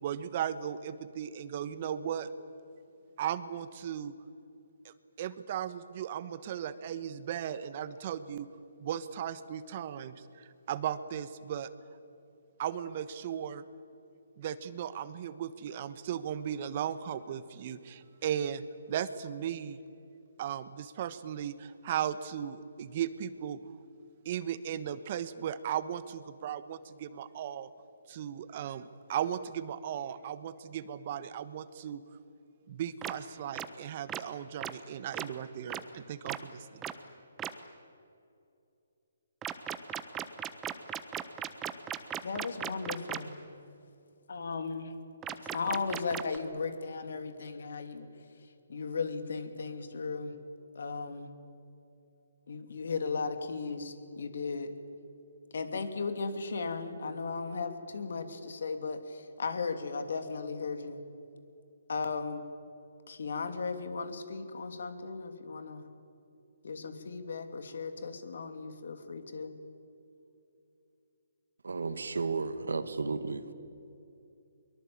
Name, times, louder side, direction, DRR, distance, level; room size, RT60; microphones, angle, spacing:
voice 1, 0.0-2.3 3.2-4.1 4.8-8.5 8.8-11.7 12.6-13.6 14.4-19.8 20.4-23.6 24.2-27.7 28.1-32.0 32.7-36.9, right 9 dB, 40° right, 14 dB, 1.2 m, -36 dB
sound 1, 33.0-33.1 33.5-33.7 34.1-34.2 34.6-34.7 35.1-35.2 35.7-35.8 36.3-36.4 36.8-36.9 37.4-37.5 39.4-43.2 45.2-46.4, right 10 dB, 15° right, 1.1 m, -36 dB
voice 2, 42.2-43.4 44.3-44.9 45.5-48.1 48.7-50.4 50.7-51.3 52.5-54.7 55.5-61.0 61.9-62.4 63.1-65.9 66.6-69.5, left 4 dB, 65° left, 8 dB, 2.9 m, -36 dB
voice 3, 71.6-73.5, right 4 dB, 75° right, 11 dB, 1.9 m, -33 dB
23.0 x 23.0 x 8.8 m, 2.7 s
hypercardioid pair, 145°, 0 cm